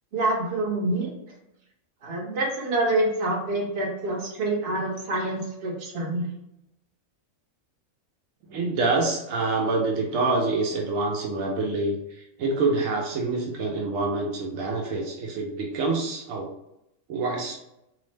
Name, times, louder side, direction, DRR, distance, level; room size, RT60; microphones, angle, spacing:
voice 1, 0.1-1.1 2.0-6.3, right 2 dB, 55° right, -2 dB, 0.9 m, -26 dB
voice 2, 8.5-12.0 12.4-16.5 17.1-17.6, right 3 dB, 80° right, -1 dB, 1.0 m, -26 dB
2.9 x 2.0 x 3.1 m, 0.84 s
omnidirectional pair, 1.4 m